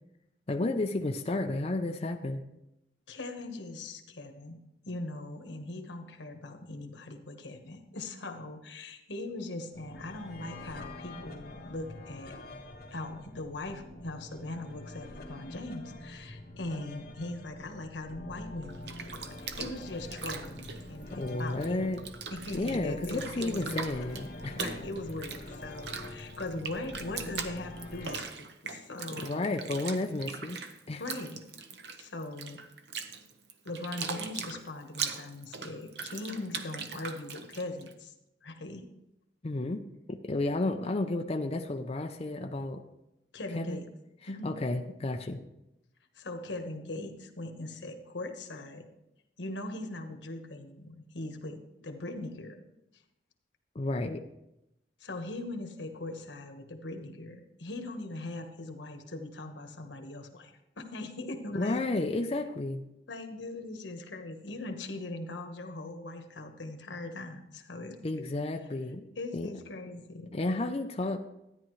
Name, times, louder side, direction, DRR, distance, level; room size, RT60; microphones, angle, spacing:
voice 1, 0.5-2.4 21.1-22.0 22.5-24.6 29.2-30.6 30.9-31.0 39.4-39.8 40.1-42.8 43.5-43.8 44.4-45.4 53.7-54.2 61.5-62.8 68.0-69.0 69.3-69.5 70.3-71.2, left 2 dB, 35° left, 4 dB, 0.5 m, -32 dB
voice 2, 3.1-4.6 4.9-12.3 12.9-21.9 22.3-23.8 24.5-29.4 31.0-31.4 32.0-32.6 33.6-38.1 38.4-38.9 43.3-43.9 44.3-44.6 46.2-48.9 49.4-52.6 55.0-61.8 63.1-68.3 69.2-70.3, left 2 dB, 90° left, 5 dB, 1.3 m, -40 dB
sound 1, 9.7-28.2, left 1 dB, 55° left, 1.6 m, -45 dB
Bathtub (filling or washing), 18.6-21.7 21.9-37.9, right 5 dB, 65° right, 0.8 m, -40 dB
13.0 x 9.9 x 3.2 m, 0.88 s
head